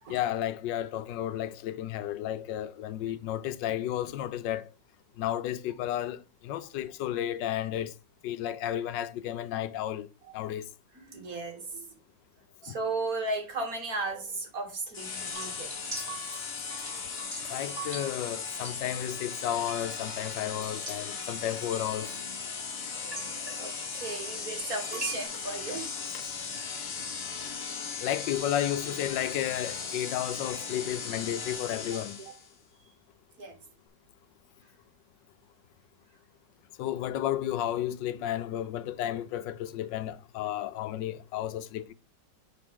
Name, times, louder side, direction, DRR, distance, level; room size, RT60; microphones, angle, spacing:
voice 1, 0.1-4.7 5.2-7.9 8.2-10.1 10.3-10.7 12.7-12.8 17.5-22.1 26.1-26.3 28.0-32.2 36.8-41.9, left 11 dB, 80° left, 1.3 m, -32 dB
voice 2, 10.9-12.0 12.6-15.9 16.8-17.2 23.6-25.9 31.9-32.0 32.3-32.4 33.4-33.5, right 3 dB, 55° right, 2.1 m, -36 dB
sound 1, 14.9-32.5, left 5 dB, 40° left, 1.0 m, -37 dB
sound 2, 15.3-22.4 22.9-25.2, right 3 dB, 15° right, 2.2 m, -43 dB
10.5 x 4.2 x 3.7 m
omnidirectional pair, 1.9 m